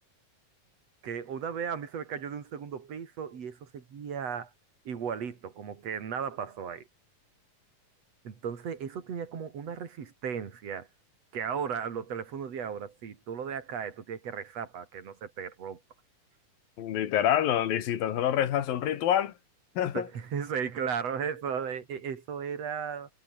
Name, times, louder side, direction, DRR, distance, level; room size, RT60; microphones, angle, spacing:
voice 1, 1.0-4.5 4.9-6.9 8.2-10.9 11.3-15.8 19.9-23.1, right 7 dB, 50° right, 3.6 m, -35 dB
voice 2, 16.8-19.3 19.8-20.1, left 10 dB, 85° left, 3.6 m, -27 dB
omnidirectional pair, 4.0 m